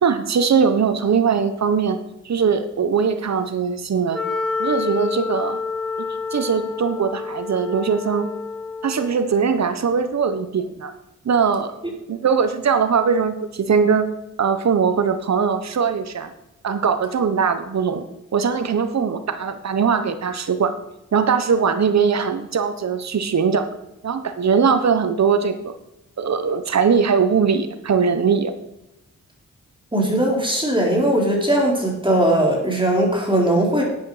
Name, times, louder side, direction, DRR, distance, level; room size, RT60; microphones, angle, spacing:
voice 1, 0.0-2.0 2.2-4.2 4.6-5.6 6.3-8.3 8.8-10.9 11.2-11.7 12.1-14.1 14.4-16.3 16.6-18.0 18.3-20.7 21.1-23.7 24.0-25.7 26.2-28.5, right 6 dB, 60° right, 10 dB, 1.1 m, -20 dB
Wind instrument woodwind instrument, 4.1-9.2, left 4 dB, ahead, 3.7 m, -28 dB
voice 2, 29.9-33.8, right 1 dB, 15° right, -1 dB, 4.2 m, -19 dB
12.0 x 8.5 x 5.0 m, 0.88 s
cardioid pair, 60°, 31 cm